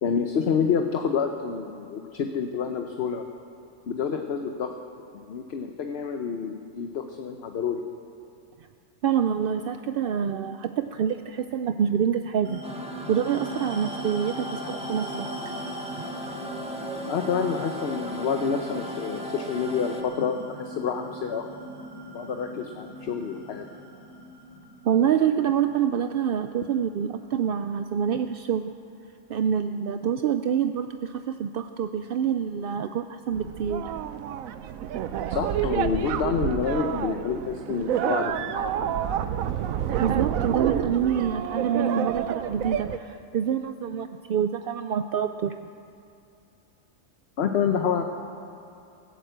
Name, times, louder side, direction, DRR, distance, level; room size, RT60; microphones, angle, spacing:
voice 1, 0.0-3.2 3.9-4.7 5.3-7.8 17.1-21.4 22.1-23.7 35.3-39.0 47.4-48.0, left 6 dB, 55° left, 5 dB, 1.0 m, -28 dB
voice 2, 9.0-12.6 13.1-15.3 24.8-28.7 29.3-33.9 40.0-45.5, right 8 dB, 65° right, 8 dB, 0.5 m, -26 dB
sound 1, 12.4-27.3, equal, 15° left, 3.7 m, -39 dB
sound 2, 12.6-20.0, equal, 5° right, 0.9 m, -38 dB
sound 3, 33.3-43.0, right 10 dB, 85° right, 1.1 m, -28 dB
15.5 x 11.0 x 8.0 m, 2.6 s
omnidirectional pair, 1.4 m